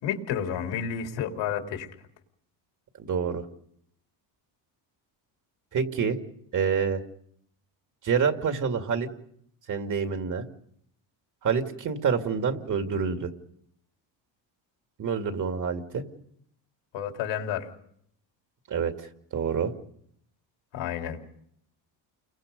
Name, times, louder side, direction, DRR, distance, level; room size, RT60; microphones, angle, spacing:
voice 1, 0.0-1.9 16.9-17.7 20.7-21.2, left 8 dB, 80° left, 4 dB, 3.4 m, -30 dB
voice 2, 3.1-3.4 5.7-6.2 6.5-7.0 8.0-9.1 9.7-10.4 11.4-13.3 15.0-16.0 18.7-18.9 19.3-19.7, right 6 dB, 45° right, 6 dB, 2.4 m, -27 dB
30.0 x 23.0 x 5.3 m, 0.70 s
cardioid pair, 115°, 43 cm